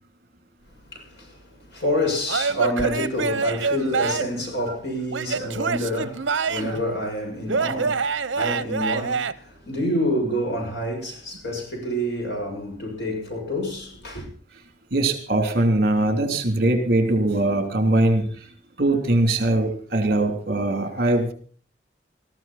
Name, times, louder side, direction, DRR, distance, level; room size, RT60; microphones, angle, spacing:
voice 1, 0.9-1.4 1.7-14.3, equal, 60° left, 7.0 m, -28 dB
Male speech man speaking / Yell / Laughter, 2.3-4.4 5.1-6.8 7.5-9.3, right 5 dB, 80° right, 0.8 m, -26 dB
voice 2, 14.9-18.5 18.8-21.3, right 2 dB, 55° right, 3.1 m, -21 dB
20.0 x 14.5 x 4.2 m
head